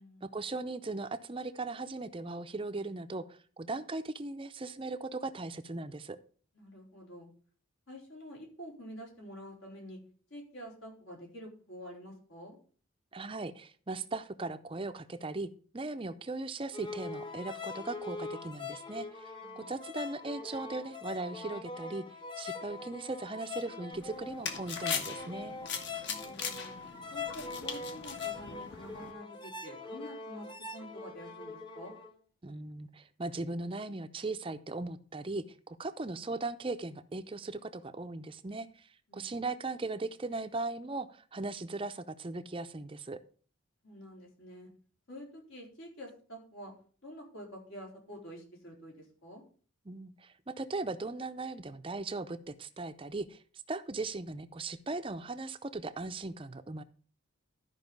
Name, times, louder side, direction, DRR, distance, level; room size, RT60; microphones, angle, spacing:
voice 1, 0.2-6.2 13.1-15.5 15.7-22.0 22.4-25.6 32.4-43.2 49.9-53.4 53.7-56.8, right 3 dB, 25° right, 11 dB, 0.5 m, -38 dB
voice 2, 6.5-7.3 7.9-10.0 10.3-12.6 19.4-19.7 26.0-26.8 27.1-31.9 39.1-39.4 43.8-44.7 45.1-46.7 47.0-49.4, equal, 75° left, -1 dB, 4.1 m, -48 dB
sound 1, 16.7-32.1, left 4 dB, 20° left, 0.9 m, -42 dB
sound 2, 23.9-29.1, left 6 dB, 55° left, 1.3 m, -40 dB
12.5 x 5.3 x 5.3 m, 0.43 s
head